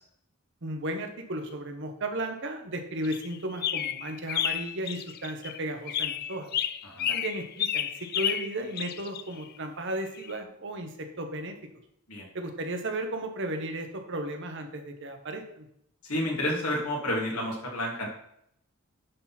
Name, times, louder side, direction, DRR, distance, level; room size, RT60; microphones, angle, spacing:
voice 1, 0.6-6.5 7.1-11.6 12.3-15.7, right 1 dB, 55° right, 5 dB, 1.1 m, -35 dB
sound 1, 3.0-5.6 5.9-9.4 10.2-10.3, left 10 dB, 45° left, 0.3 m, -31 dB
voice 2, 16.0-18.1, left 1 dB, 90° left, -2 dB, 2.6 m, -30 dB
10.5 x 4.1 x 4.3 m, 0.74 s
head